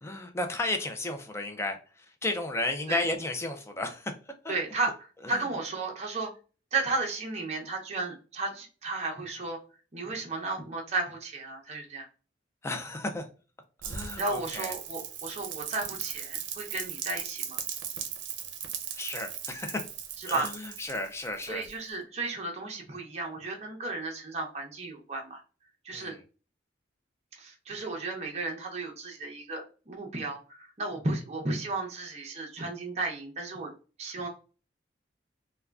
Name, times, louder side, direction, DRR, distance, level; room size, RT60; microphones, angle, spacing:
voice 1, 0.0-4.1 4.4-4.5 5.2-5.5 12.6-13.3 13.8-14.7 18.9-19.8 20.3-21.7 25.9-26.2, left 2 dB, 15° left, 5 dB, 0.3 m, -33 dB
voice 2, 4.5-4.9 5.3-6.3 6.7-9.6 9.9-12.1 14.2-17.6 20.2-20.5 21.5-25.4 25.8-26.1 27.3-33.7 34.0-34.3, right 3 dB, 35° right, 0 dB, 0.6 m, -34 dB
Rain, 13.8-21.9, right 8 dB, 90° right, 0.5 m, -38 dB
3.5 x 2.2 x 2.3 m, 0.35 s
head